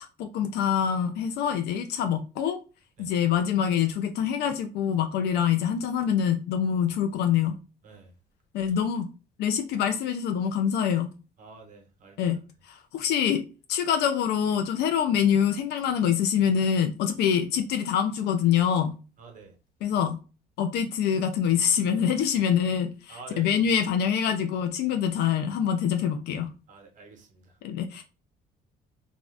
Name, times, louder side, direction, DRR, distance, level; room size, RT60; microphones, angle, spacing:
voice 1, 0.2-2.6 3.0-7.6 8.5-9.1 9.4-11.1 12.2-12.4 12.7-13.4 13.7-18.9 19.8-20.2 20.6-26.5 27.6-28.0, left 8 dB, 75° left, 0.5 m, -25 dB
voice 2, 11.4-12.4 19.2-19.5 23.1-23.8 26.7-27.6, right 4 dB, 50° right, 1.0 m, -47 dB
2.5 x 2.4 x 3.2 m
cardioid pair, 110°, 17 cm